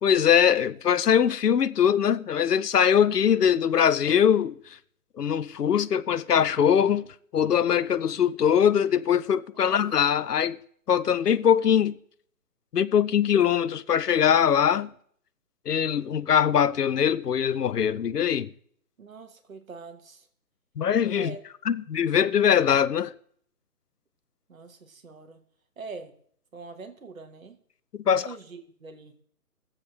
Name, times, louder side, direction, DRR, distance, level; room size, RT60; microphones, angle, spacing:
voice 1, 0.0-4.5 5.2-7.1 7.3-10.6 10.9-12.0 12.7-14.9 15.7-18.5 20.8-21.3 21.7-23.1 28.0-28.3, left 8 dB, 80° left, 0.7 m, -22 dB
voice 2, 19.0-20.3 21.1-21.4 24.5-25.4 25.8-26.2 26.5-27.6 28.1-29.2, right 4 dB, 60° right, 1.6 m, -43 dB
22.5 x 7.6 x 3.2 m
hypercardioid pair, 175°, 46 cm